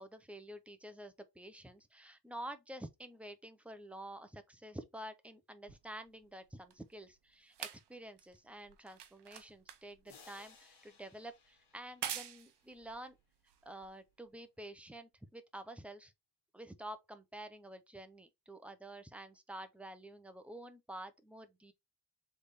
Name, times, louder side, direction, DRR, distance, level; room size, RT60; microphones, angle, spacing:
voice 1, 0.0-13.2 13.6-16.1 16.5-21.7, right 1 dB, 5° right, 0.5 m, -49 dB
sound 1, 5.7-14.3 15.1-15.2, right 9 dB, 85° right, 0.8 m, -48 dB
sound 2, 10.1-12.7, left 5 dB, 85° left, 1.5 m, -62 dB
3.5 x 3.3 x 4.0 m
wide cardioid pair, 155°, 40 cm